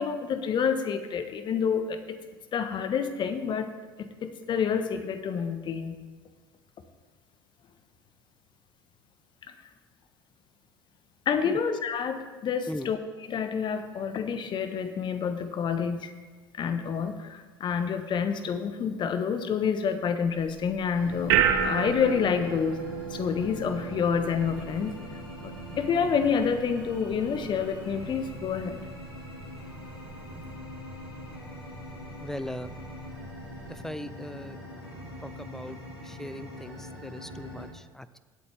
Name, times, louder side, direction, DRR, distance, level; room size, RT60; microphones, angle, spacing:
voice 1, 0.0-2.2 2.5-3.7 4.0-5.9 11.2-13.0 13.3-16.1 16.5-22.8 23.1-28.8, left 6 dB, 40° left, 9 dB, 1.2 m, -28 dB
sound 1, 20.3-33.8, right 9 dB, 65° right, 1.0 m, -34 dB
sound 2, 20.9-37.7, left 1 dB, 85° left, 2.3 m, -43 dB
voice 2, 32.2-32.7 33.7-34.6 35.2-38.2, left 1 dB, 5° left, 15 dB, 0.5 m, -39 dB
17.5 x 8.2 x 3.5 m, 1.3 s
figure-of-eight pair, 65°, 12 cm